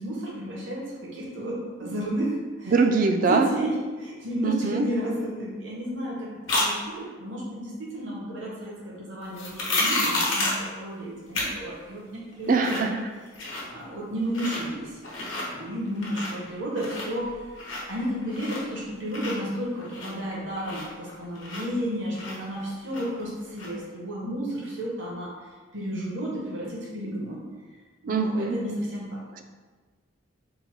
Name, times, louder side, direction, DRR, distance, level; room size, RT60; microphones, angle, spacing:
voice 1, 0.0-2.8 3.2-13.0 13.6-14.9 15.5-17.5 17.9-25.3 25.7-27.4 28.0-29.2, equal, 75° right, -4 dB, 0.9 m, -32 dB
voice 2, 2.7-3.5 4.4-4.9 12.5-13.0 28.1-28.6, right 4 dB, 45° right, 5 dB, 0.3 m, -22 dB
sound 1, 6.5-6.7 9.4-10.7 11.3-11.5 11.9-12.0 12.3-12.9 13.2-13.8 14.3-14.6 15.0-15.5 15.9-16.5 16.8-18.8 19.1-21.8 22.1-23.2 23.6-23.7, left 2 dB, 85° left, 1.0 m, -30 dB
3.8 x 2.0 x 4.4 m, 1.4 s
head